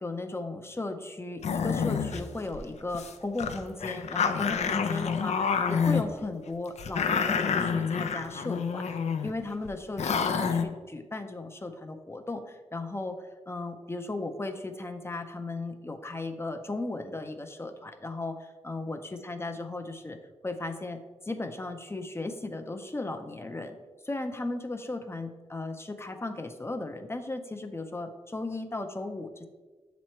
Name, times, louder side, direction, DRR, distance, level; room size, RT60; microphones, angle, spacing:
voice 1, 0.0-20.2 20.4-23.8 24.0-29.5, left 2 dB, 20° left, 6 dB, 0.5 m, -36 dB
sound 1, 1.4-2.2 2.5-2.6 2.9-3.1 3.4-6.0 6.8-9.3 9.6-9.7 10.0-10.6, left 6 dB, 85° left, 0.4 m, -28 dB
7.2 x 3.0 x 4.3 m, 1.3 s
wide cardioid pair, 90°, 11 cm